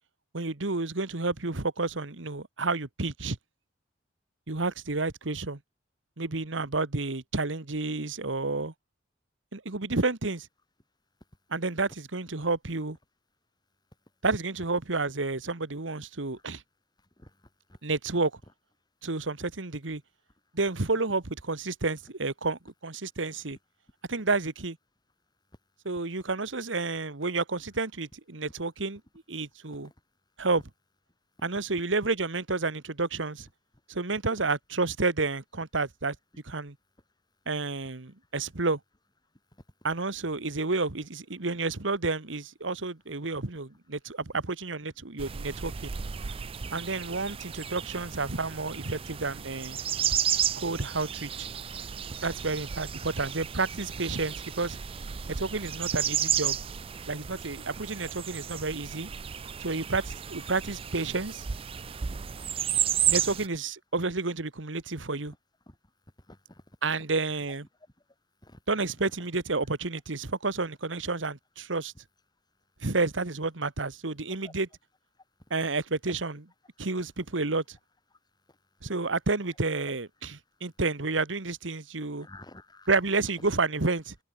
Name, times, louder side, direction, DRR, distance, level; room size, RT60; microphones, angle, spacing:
voice 1, 0.3-3.4 4.5-5.6 6.2-8.7 9.5-10.5 11.5-13.0 14.2-16.6 17.8-18.3 19.0-20.0 20.5-23.6 24.1-24.8 25.8-29.0 29.3-29.9 30.4-30.6 31.4-33.5 33.9-36.1 36.4-36.7 37.4-38.8 39.8-45.9 46.7-49.8 50.5-51.5 52.2-54.8 55.4-56.6 57.1-59.1 59.6-61.4 63.0-65.3 66.8-67.7 68.7-71.9 72.8-74.7 75.5-76.4 76.8-77.8 78.8-82.3 82.9-84.1, right 3 dB, 90° right, 1.7 m, -30 dB
sound 1, 45.2-63.5, right 9 dB, 30° right, 0.4 m, -33 dB
voice 2, 66.3-66.8 68.4-68.6 74.4-74.5 78.5-78.6 82.2-82.9, left 1 dB, 25° left, 4.9 m, -50 dB
head